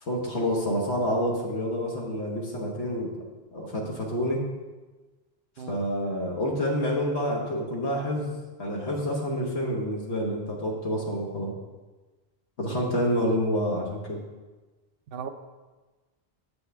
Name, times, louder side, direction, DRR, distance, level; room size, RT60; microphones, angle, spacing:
voice 1, 0.0-3.1 3.5-4.4 5.7-8.3 8.6-11.5 12.6-14.2, equal, 90° left, -2 dB, 1.5 m, -28 dB
voice 2, 5.6-5.8 12.7-12.9 15.1-15.3, right 7 dB, 65° right, 9 dB, 0.8 m, -37 dB
7.9 x 7.7 x 3.4 m, 1.2 s
omnidirectional pair, 1.1 m